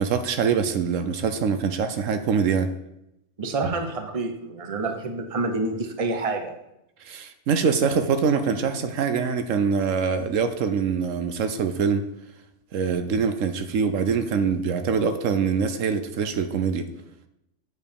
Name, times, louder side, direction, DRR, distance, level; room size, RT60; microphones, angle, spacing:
voice 1, 0.0-2.7 3.6-3.7 7.0-12.1 12.7-16.9, right 6 dB, 75° right, 9 dB, 1.1 m, -24 dB
voice 2, 3.4-6.5, right 3 dB, 30° right, 6 dB, 0.9 m, -28 dB
8.1 x 4.8 x 6.9 m, 0.86 s
omnidirectional pair, 1.3 m